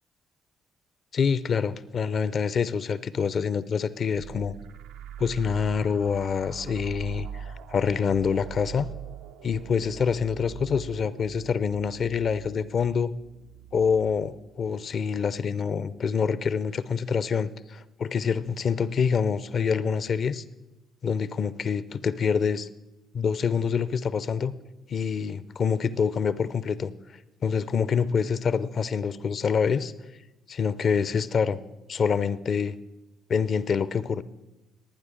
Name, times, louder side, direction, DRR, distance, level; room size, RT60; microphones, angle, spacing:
voice 1, 1.1-4.5 5.2-8.9 9.4-13.1 13.7-20.4 21.0-22.7 23.1-24.5 24.9-26.9 27.4-29.9 30.5-31.6 31.9-32.7 33.3-34.2, left 6 dB, 50° left, 17 dB, 0.5 m, -26 dB
sound 1, 4.1-15.5, right 9 dB, 70° right, 0.4 m, -42 dB
19.0 x 9.5 x 3.8 m, 1.0 s
figure-of-eight pair, 45°, 0 cm